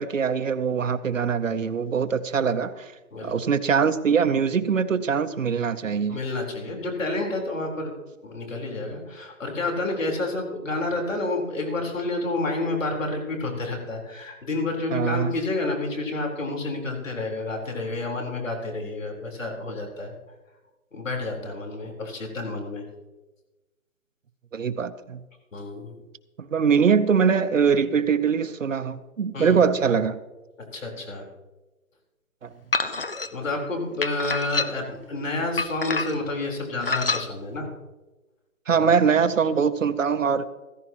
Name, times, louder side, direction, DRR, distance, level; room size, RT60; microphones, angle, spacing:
voice 1, 0.0-2.9 3.2-6.2 14.9-15.3 24.5-25.2 26.4-30.2 32.4-32.5 38.7-40.5, right 6 dB, 60° right, 12 dB, 0.9 m, -22 dB
voice 2, 6.1-7.9 8.2-20.1 20.9-22.8 25.5-25.9 29.3-29.6 30.7-31.3 33.3-37.7 38.8-38.9, left 2 dB, 60° left, 1 dB, 4.2 m, -29 dB
sound 1, 32.7-33.3 34.0-34.9 35.6-36.3 36.8-37.2, left 3 dB, 40° left, 0.6 m, -27 dB
15.0 x 15.0 x 3.0 m, 1.1 s
hypercardioid pair, 175°, 43 cm